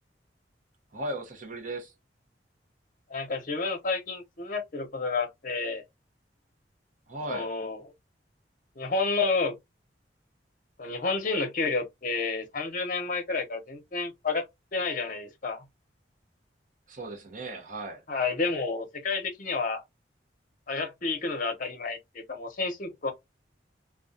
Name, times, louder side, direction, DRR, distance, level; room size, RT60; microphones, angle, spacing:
voice 1, 0.9-1.9 7.1-7.5 16.9-18.0, right 1 dB, 45° right, 0.7 m, -37 dB
voice 2, 3.1-5.8 7.3-7.8 8.8-9.5 10.8-14.4 14.7-15.6 18.1-19.8 20.7-23.1, left 4 dB, 50° left, 0.7 m, -30 dB
2.3 x 2.2 x 2.5 m
head